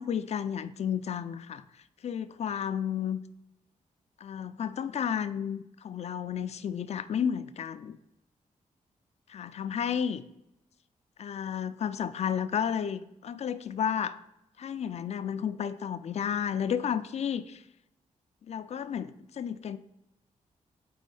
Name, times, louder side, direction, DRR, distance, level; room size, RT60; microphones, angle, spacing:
voice 1, 0.0-1.6 2.0-3.2 4.2-8.0 9.3-10.2 11.2-14.2 14.6-17.6 18.5-19.8, left 8 dB, 55° left, 12 dB, 0.4 m, -32 dB
4.4 x 4.2 x 5.3 m, 0.82 s
cardioid pair, 105°, 13 cm